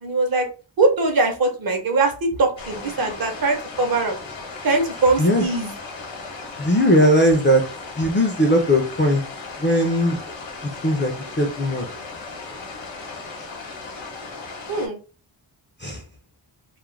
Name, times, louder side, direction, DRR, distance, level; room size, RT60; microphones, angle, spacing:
voice 1, 0.0-0.5 0.8-4.2 4.6-5.7 14.7-15.0, right 3 dB, 50° right, 4 dB, 0.6 m, -21 dB
sound 1, 2.6-14.9, left 3 dB, 75° left, 0.9 m, -36 dB
voice 2, 6.6-7.6 8.0-9.2 9.6-10.2 10.8-11.9 15.8-16.0, equal, 25° left, 2 dB, 0.4 m, -19 dB
2.4 x 2.0 x 3.1 m, 0.34 s
wide cardioid pair, 175°, 46 cm